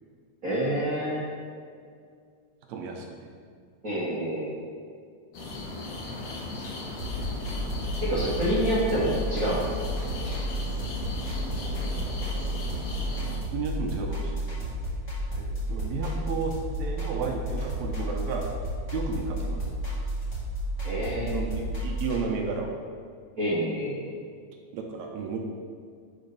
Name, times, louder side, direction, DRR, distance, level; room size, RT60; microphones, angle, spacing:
voice 1, 0.4-1.2 3.8-4.5 8.0-9.6 10.1-10.3 15.3-15.4 20.8-21.4 23.4-24.1, equal, 50° right, -10 dB, 1.0 m, -28 dB
voice 2, 2.7-3.3 13.5-14.7 15.7-18.5 18.9-19.7 21.3-22.8 24.7-25.4, right 4 dB, 75° right, 2 dB, 1.8 m, -33 dB
sound 1, 5.3-13.4, left 2 dB, 65° left, 1.9 m, -37 dB
sound 2, 7.0-22.2, right 1 dB, 40° left, 1.1 m, -32 dB
5.4 x 5.0 x 5.2 m, 2.2 s
omnidirectional pair, 3.4 m